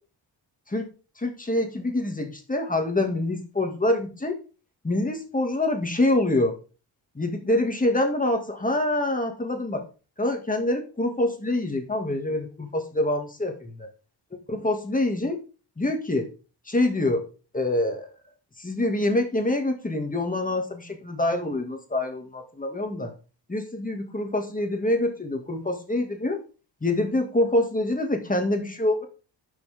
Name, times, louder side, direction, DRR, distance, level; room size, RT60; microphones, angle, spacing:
voice 1, 1.2-4.4 4.8-6.5 7.2-9.8 10.2-13.8 14.5-15.4 15.8-16.3 16.7-17.3 17.5-18.1 18.6-23.1 23.5-26.4 26.8-29.0, left 1 dB, 20° left, 4 dB, 2.3 m, -25 dB
11.5 x 6.3 x 3.7 m, 0.34 s
cardioid pair, 100°, 44 cm